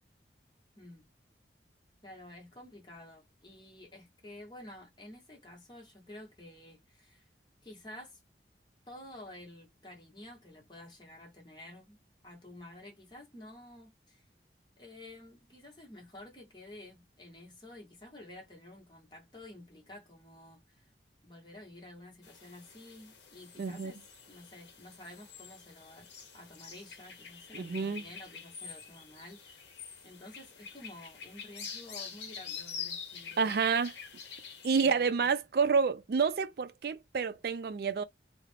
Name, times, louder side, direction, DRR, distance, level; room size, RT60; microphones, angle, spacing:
voice 1, 0.8-1.1 2.0-7.2 7.6-8.2 8.9-12.0 12.2-14.2 14.8-20.9 21.2-24.0 24.3-26.1 26.3-29.6 30.0-33.6 34.8-35.3, left 1 dB, 25° left, 1.0 m, -51 dB
sound 1, 22.2-34.9, left 6 dB, 80° left, 0.7 m, -46 dB
voice 2, 23.6-23.9 27.5-28.0 33.4-33.9 34.6-38.0, right 5 dB, 55° right, 0.3 m, -29 dB
2.4 x 2.0 x 3.2 m
head